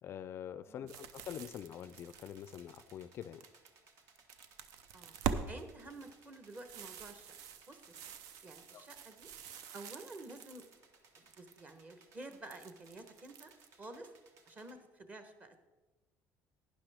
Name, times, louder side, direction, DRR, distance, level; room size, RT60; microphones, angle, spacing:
voice 1, 0.0-3.5 8.7-8.9, left 9 dB, 45° left, 14 dB, 0.3 m, -45 dB
sound 1, 0.9-3.7 4.1-5.5 5.8-10.8 11.1-11.7 12.3-13.7, right 7 dB, 80° right, 0.6 m, -44 dB
sound 2, 1.1-14.7, right 4 dB, 60° right, 1.4 m, -65 dB
voice 2, 5.5-7.4 7.7-8.1 8.4-9.3 9.7-10.6 11.1-13.5 13.8-14.1 14.5-15.6, right 2 dB, 25° right, 8 dB, 1.1 m, -50 dB
11.5 x 10.0 x 3.5 m, 1.2 s
cardioid pair, 135°, 6 cm